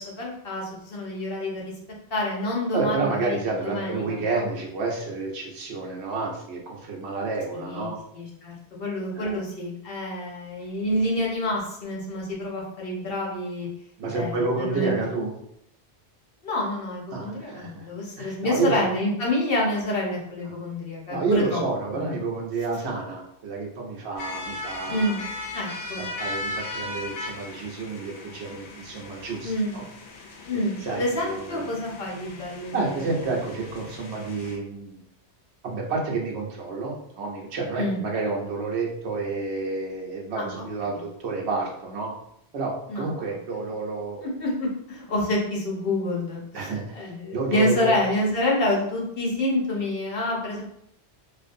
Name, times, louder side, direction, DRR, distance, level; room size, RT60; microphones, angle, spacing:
voice 1, 0.0-1.7 2.1-3.4 3.6-4.4 7.5-8.5 8.8-13.7 14.1-14.9 16.4-21.6 21.9-22.1 24.9-25.2 25.5-26.1 29.4-29.8 30.5-33.3 37.8-38.0 40.4-40.5 42.9-43.1 44.2-50.6, left 1 dB, 60° left, -3 dB, 0.9 m, -28 dB
voice 2, 2.7-8.0 9.1-9.4 14.0-15.3 17.1-17.9 18.2-18.9 20.4-20.5 21.1-25.2 26.0-29.8 30.8-31.7 32.7-35.0 35.6-42.1 42.5-44.2 46.5-47.9, right 3 dB, 80° right, -1 dB, 0.9 m, -30 dB
sound 1, 24.2-34.6, left 2 dB, 90° left, 0.9 m, -37 dB
2.5 x 2.5 x 2.5 m, 0.73 s
omnidirectional pair, 1.1 m